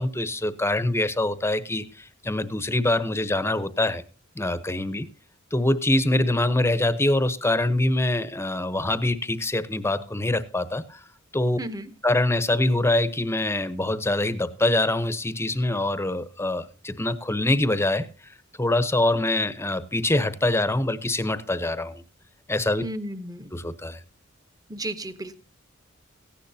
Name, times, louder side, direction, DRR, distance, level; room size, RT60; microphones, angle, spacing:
voice 1, 0.0-4.0 4.3-5.1 5.5-11.0 11.3-11.6 12.0-18.1 18.6-22.0 22.5-22.8 23.5-24.0, left 1 dB, 10° left, 13 dB, 0.9 m, -24 dB
voice 2, 11.6-11.9 22.8-23.6 24.7-25.4, right 1 dB, 20° right, 11 dB, 1.1 m, -34 dB
17.5 x 15.5 x 2.8 m, 0.32 s
head